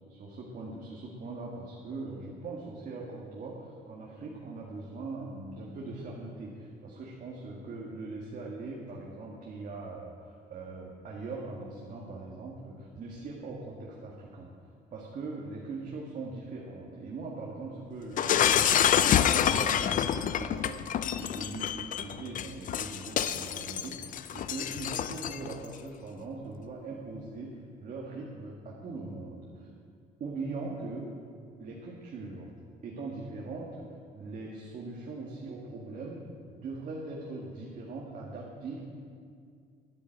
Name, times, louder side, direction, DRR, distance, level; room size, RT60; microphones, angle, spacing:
voice 1, 0.1-14.5 14.9-29.7 30.2-31.0 31.6-32.5 32.8-38.8, right 3 dB, 50° right, -2 dB, 1.9 m, -41 dB
Shatter, 18.2-25.5, left 9 dB, 50° left, 0.6 m, -27 dB
11.0 x 8.7 x 8.7 m, 2.2 s
cardioid pair, 110°, 17 cm